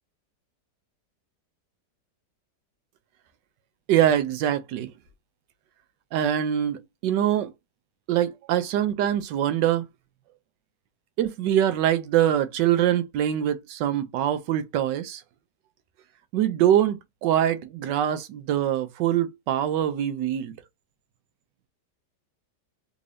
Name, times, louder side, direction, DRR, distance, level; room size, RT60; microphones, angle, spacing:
voice 1, 3.9-4.9 6.1-7.5 8.1-9.9 11.2-15.2 16.3-20.5, right 11 dB, 85° right, 1.3 m, -24 dB
3.5 x 2.6 x 3.2 m
omnidirectional pair, 1.9 m